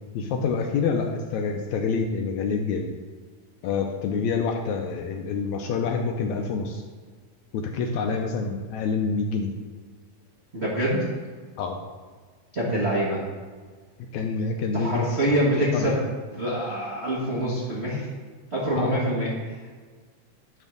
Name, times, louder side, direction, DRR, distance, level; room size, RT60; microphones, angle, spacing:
voice 1, 0.1-2.9 3.6-6.8 7.5-9.5 11.6-11.8 14.1-15.2 15.7-15.9 18.7-19.0, left 5 dB, 80° left, 3 dB, 1.8 m, -27 dB
voice 2, 10.5-11.1 12.5-13.2 14.7-16.0 16.3-18.1 18.5-19.3, right 1 dB, 75° right, -7 dB, 0.6 m, -25 dB
10.5 x 3.6 x 6.6 m, 1.5 s
omnidirectional pair, 3.7 m